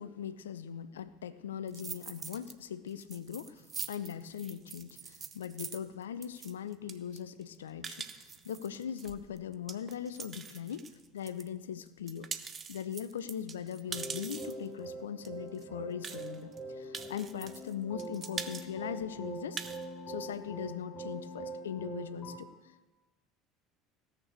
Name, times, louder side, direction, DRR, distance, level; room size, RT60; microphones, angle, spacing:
voice 1, 0.0-10.9 11.1-12.3 12.7-19.6 20.1-22.5, left 8 dB, 70° left, 15 dB, 0.5 m, -40 dB
sound 1, 1.7-2.5 2.9-11.5 11.9-14.7 15.2-15.3 15.5-15.6 16.0-16.6 16.9-17.7 18.0-18.7 19.0-19.1 19.4-19.8, right 6 dB, 30° right, 0.8 m, -43 dB
sound 2, 13.8-22.4, right 2 dB, 35° left, 5.0 m, -43 dB
16.5 x 6.7 x 6.5 m, 1.2 s
figure-of-eight pair, 65°, 0 cm